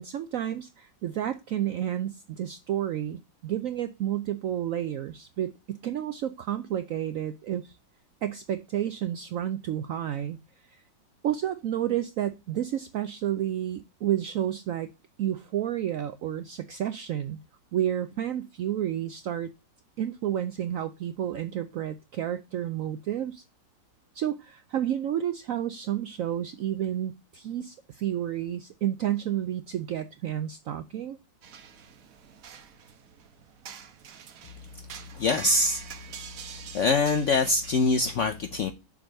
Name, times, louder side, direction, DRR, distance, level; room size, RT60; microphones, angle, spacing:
voice 1, 0.0-7.7 8.2-10.4 11.2-14.9 15.2-17.4 17.7-19.5 20.0-23.4 24.1-31.2, right 11 dB, 75° right, 0.7 m, -30 dB
sound 1, 31.4-37.8, right 8 dB, 55° right, 1.2 m, -46 dB
voice 2, 35.1-35.8 36.7-38.7, left 3 dB, 70° left, 0.7 m, -24 dB
7.0 x 3.9 x 6.3 m
omnidirectional pair, 2.0 m